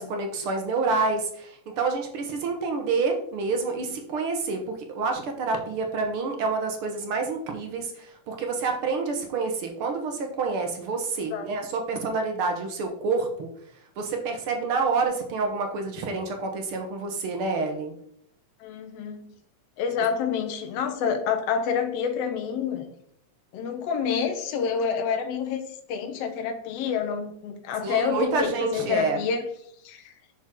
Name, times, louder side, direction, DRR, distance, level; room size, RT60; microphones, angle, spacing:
voice 1, 0.0-13.5 14.0-17.9 27.8-29.2, right 4 dB, 60° right, 4 dB, 1.5 m, -28 dB
voice 2, 18.6-19.3 19.8-22.9 23.5-25.6 25.9-29.5 29.8-30.1, left 6 dB, 70° left, 5 dB, 1.5 m, -28 dB
8.8 x 6.2 x 3.8 m, 0.68 s
omnidirectional pair, 3.7 m